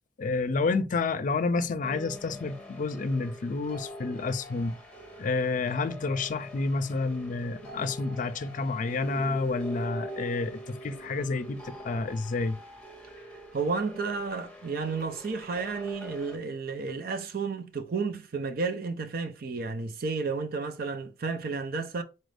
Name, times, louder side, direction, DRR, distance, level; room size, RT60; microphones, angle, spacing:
voice 1, 0.2-4.8 5.2-12.6, left 3 dB, 45° left, 0.4 m, -29 dB
sound 1, 1.8-16.4, equal, 5° left, 0.9 m, -43 dB
voice 2, 13.5-22.0, right 4 dB, 55° right, 0.5 m, -32 dB
4.2 x 2.6 x 3.2 m
head